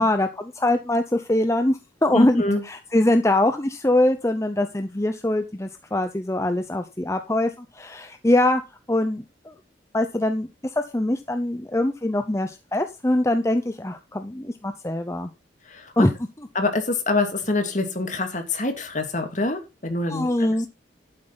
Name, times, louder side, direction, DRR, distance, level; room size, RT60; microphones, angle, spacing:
voice 1, 0.0-8.6 8.9-9.5 9.9-15.3 16.0-16.1 20.1-20.7, left 1 dB, 15° left, 7 dB, 0.7 m, -23 dB
voice 2, 2.1-2.6 15.7-16.1 16.5-20.3, left 2 dB, 40° left, 7 dB, 2.3 m, -25 dB
11.5 x 8.9 x 4.1 m, 0.26 s
head